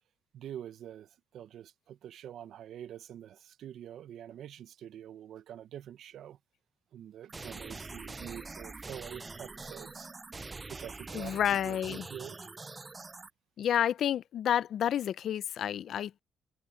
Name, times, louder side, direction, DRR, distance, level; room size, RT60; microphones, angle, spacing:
voice 1, 0.3-6.4 6.9-10.1 10.7-12.4, right 10 dB, 70° right, 0.9 m, -46 dB
sound 1, 7.3-13.3, right 3 dB, 25° right, 0.5 m, -44 dB
voice 2, 11.1-12.1 13.6-16.2, left 10 dB, 65° left, 0.7 m, -30 dB
cardioid pair, 90°, 0 cm